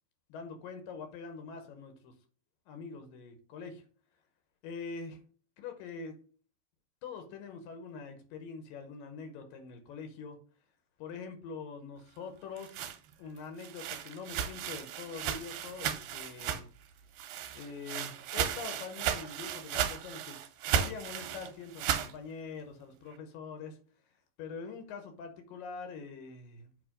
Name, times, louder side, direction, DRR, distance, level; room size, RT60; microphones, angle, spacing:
voice 1, 0.3-2.1 2.7-3.8 4.6-5.2 5.6-6.2 7.0-10.4 11.0-12.8 13.2-16.7 17.6-20.4 20.7-23.8 24.4-26.7, left 5 dB, 80° left, 5 dB, 2.6 m, -44 dB
sound 1, 12.3-16.9 17.2-22.1, right 9 dB, 80° right, 2.3 m, -35 dB
8.3 x 2.9 x 5.0 m, 0.43 s
omnidirectional pair, 4.1 m